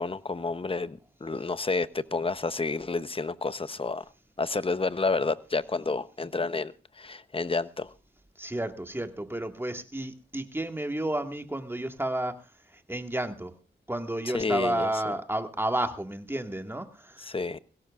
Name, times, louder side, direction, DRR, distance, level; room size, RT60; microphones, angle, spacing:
voice 1, 0.0-4.0 4.4-7.9 14.3-14.9 17.2-17.6, left 3 dB, 30° left, 0.9 m, -30 dB
voice 2, 8.4-13.5 13.9-17.4, right 1 dB, 10° right, 1.9 m, -32 dB
21.5 x 17.0 x 2.5 m
cardioid pair, 70°, 19 cm